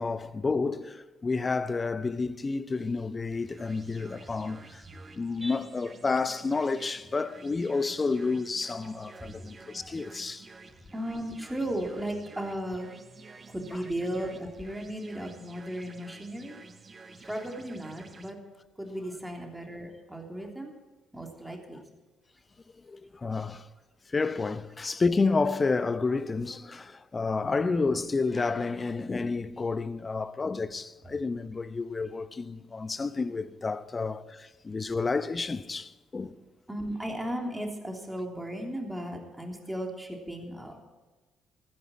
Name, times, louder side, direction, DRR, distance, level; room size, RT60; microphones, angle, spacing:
voice 1, 0.0-4.8 5.1-10.5 22.9-23.7 24.1-36.4, left 4 dB, 30° left, 0.9 m, -30 dB
sound 1, 3.3-18.3, right 4 dB, 35° right, 1.3 m, -51 dB
voice 2, 10.9-12.9 13.5-16.5 17.3-18.4 18.8-20.7 21.1-21.8 36.7-40.8, right 1 dB, 10° right, 3.2 m, -36 dB
15.5 x 15.0 x 4.4 m
hypercardioid pair, 45°, 0 cm